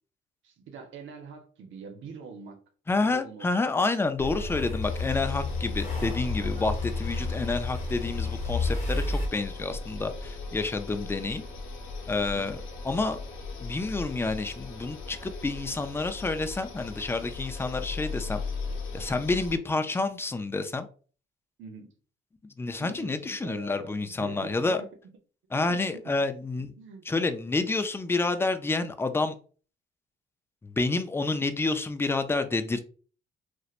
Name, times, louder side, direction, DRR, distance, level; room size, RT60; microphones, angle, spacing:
voice 1, 0.4-2.6 3.0-3.5 6.4-6.7 12.3-12.6 21.6-21.9 22.8-24.9 25.5-26.1 26.8-27.1, right 5 dB, 75° right, 5 dB, 0.7 m, -44 dB
voice 2, 2.9-11.4 12.1-12.6 12.8-13.2 13.6-18.4 18.9-20.9 22.6-24.8 25.5-26.7 27.1-29.3 30.6-32.8, left 3 dB, 10° left, 9 dB, 0.3 m, -29 dB
sound 1, 4.2-9.3, left 3 dB, 35° left, 0.9 m, -31 dB
sound 2, 4.8-19.6, left 3 dB, 80° left, 0.7 m, -38 dB
2.8 x 2.1 x 2.4 m, 0.39 s
cardioid pair, 90°, 20 cm